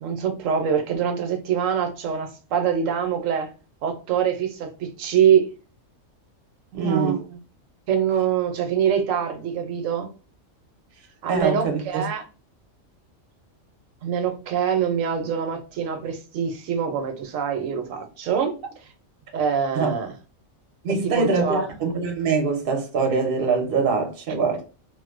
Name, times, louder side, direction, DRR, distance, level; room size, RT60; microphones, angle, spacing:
voice 1, 0.0-3.5 3.8-5.5 6.7-7.4 7.9-10.1 11.2-12.2 14.0-18.6 19.3-20.1 21.0-21.6, right 8 dB, 80° right, 1.0 m, -24 dB
voice 2, 6.7-7.2 11.3-12.0 19.7-19.9 20.8-24.6, right 4 dB, 55° right, 0.8 m, -23 dB
2.5 x 2.1 x 2.4 m
omnidirectional pair, 1.3 m